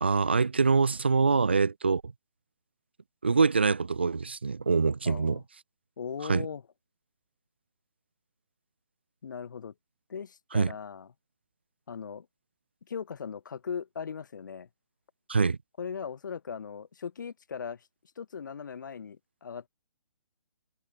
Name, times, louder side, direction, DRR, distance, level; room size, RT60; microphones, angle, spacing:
voice 1, 0.0-2.0 3.2-5.4 6.3-6.5 10.5-10.7 15.3-15.6, right 4 dB, 20° right, 0.4 m, -24 dB
voice 2, 5.0-5.4 6.0-6.6 9.2-9.7 10.1-11.1 11.9-12.3 12.9-14.7 15.8-17.9 18.2-19.7, left 6 dB, 40° left, 3.5 m, -38 dB
hypercardioid pair, 180°, 16 cm